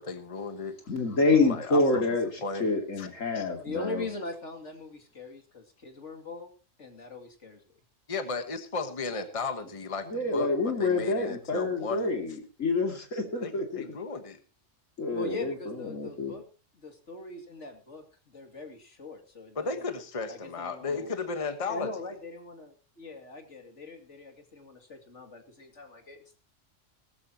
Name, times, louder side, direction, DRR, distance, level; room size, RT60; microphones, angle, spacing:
voice 1, 0.0-0.8 1.4-2.1 2.4-2.7 3.0-3.1 3.3-3.5 8.1-12.1 13.4-14.4 19.5-21.9, left 4 dB, 25° left, 8 dB, 1.3 m, -34 dB
voice 2, 0.9-2.3 2.6-4.0 10.1-13.8 15.0-15.5 15.8-16.4, left 3 dB, 85° left, 4 dB, 3.0 m, -27 dB
voice 3, 3.6-6.5 6.8-7.6 15.1-16.4 16.7-19.7 20.3-21.1 21.7-26.4, left 3 dB, 70° left, 5 dB, 2.9 m, -41 dB
18.5 x 14.0 x 3.0 m, 0.32 s
omnidirectional pair, 1.3 m